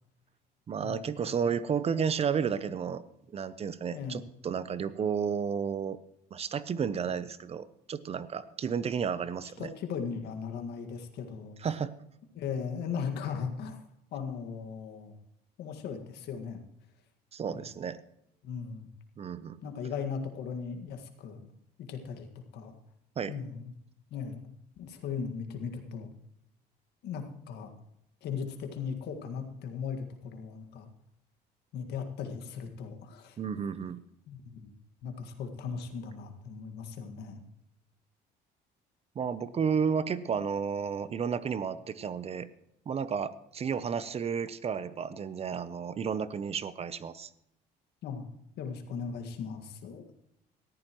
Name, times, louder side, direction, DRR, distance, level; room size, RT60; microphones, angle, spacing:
voice 1, 0.7-3.0 3.3-6.0 6.3-9.7 11.6-11.9 17.3-18.0 19.2-19.6 23.2-23.4 33.4-34.0 39.2-42.5 42.9-47.3, right 6 dB, 35° right, 15 dB, 0.7 m, -32 dB
voice 2, 9.6-11.6 12.3-13.8 14.1-15.1 15.6-16.6 17.5-17.7 18.4-18.9 19.6-21.5 21.9-22.3 22.5-22.8 23.3-23.7 24.1-24.4 24.8-26.1 27.0-27.7 28.2-30.9 31.7-33.4 34.3-34.7 35.0-37.4 48.0-48.3 48.6-50.1, left 6 dB, 75° left, 5 dB, 1.9 m, -38 dB
18.5 x 13.5 x 3.1 m, 0.78 s
cardioid pair, 110°, 17 cm